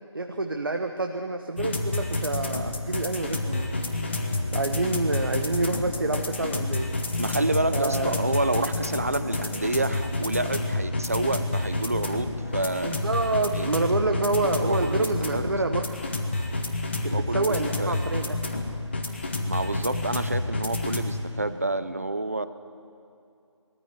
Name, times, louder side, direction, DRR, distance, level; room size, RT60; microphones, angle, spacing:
voice 1, 0.1-3.7 4.5-6.9 7.7-8.2 12.8-15.8 17.0-18.4, right 2 dB, 45° right, 5 dB, 1.1 m, -27 dB
sound 1, 1.6-21.1, left 2 dB, 20° left, 1.2 m, -29 dB
voice 2, 7.2-13.0 13.5-13.7 14.6-15.6 17.1-18.0 19.4-22.5, right 2 dB, 30° right, 13 dB, 0.7 m, -29 dB
21.0 x 14.0 x 9.9 m, 2.6 s
figure-of-eight pair, 175°, 16 cm